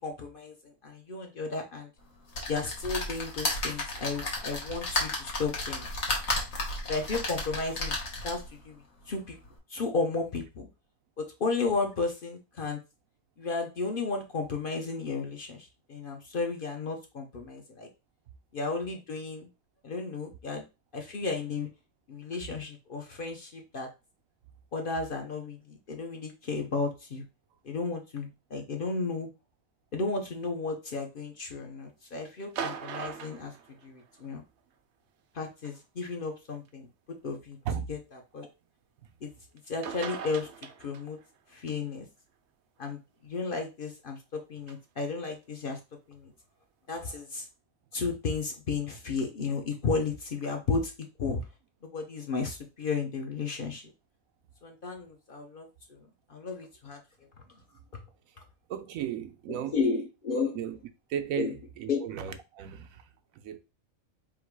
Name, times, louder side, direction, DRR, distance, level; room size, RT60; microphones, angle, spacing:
voice 1, 0.0-1.9 2.5-5.9 6.9-8.0 8.2-8.8 9.1-9.4 9.7-10.7 11.2-12.8 13.4-17.9 18.5-19.5 19.8-20.6 20.9-21.7 22.1-23.9 24.7-27.2 27.6-29.3 29.9-33.5 33.8-34.4 35.3-36.9 37.2-37.6 37.9-38.0 38.3-38.5 39.2-39.3 39.7-40.5 40.8-41.2 41.5-42.1 42.8-45.8 46.1-46.3 46.9-47.4 47.9-50.9 51.2-51.4 51.8-53.8 54.6-56.0 56.3-57.0 59.5-60.6 61.4-61.5 61.9-62.0, left 4 dB, 50° left, 0.7 m, -33 dB
sound 1, 2.3-8.6 9.1-9.2 9.5-9.6, left 2 dB, 80° left, 1.6 m, -33 dB
sound 2, 32.4-34.3 35.6-35.8 36.7-36.8 39.6-39.7 39.8-41.3 44.7-44.8, right 7 dB, 65° right, 0.7 m, -39 dB
voice 2, 58.7-59.8 60.5-60.8 61.1-63.6, right 9 dB, 80° right, 1.0 m, -35 dB
3.6 x 2.6 x 4.6 m
omnidirectional pair, 1.4 m